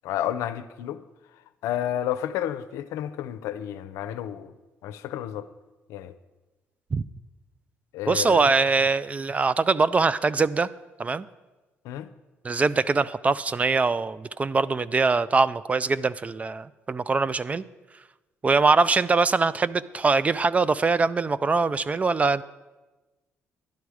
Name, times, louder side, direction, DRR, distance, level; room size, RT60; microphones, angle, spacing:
voice 1, 0.0-1.0 1.6-4.5 4.8-5.5 5.9-6.1 7.9-8.4 11.8-12.1, left 11 dB, 90° left, 0.5 m, -31 dB
voice 2, 8.1-10.7 11.0-11.3 12.4-17.6 18.4-22.4, right 4 dB, 30° right, 0.4 m, -23 dB
12.0 x 10.0 x 4.8 m
cardioid pair, 85°, 5 cm